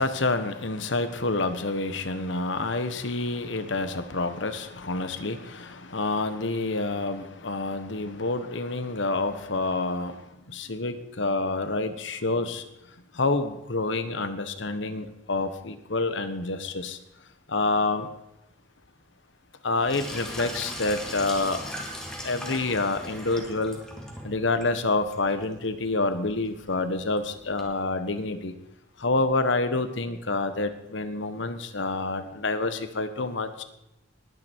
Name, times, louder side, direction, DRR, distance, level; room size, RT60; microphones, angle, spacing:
voice 1, 0.0-12.7 13.1-17.0 17.5-18.1 19.6-21.6 22.2-23.8 24.2-28.5 29.0-33.6, left 3 dB, 70° left, 10 dB, 1.3 m, -28 dB
Sink (filling or washing), 19.8-27.6, equal, 5° left, 2.3 m, -40 dB
20.0 x 9.7 x 4.6 m, 0.89 s
head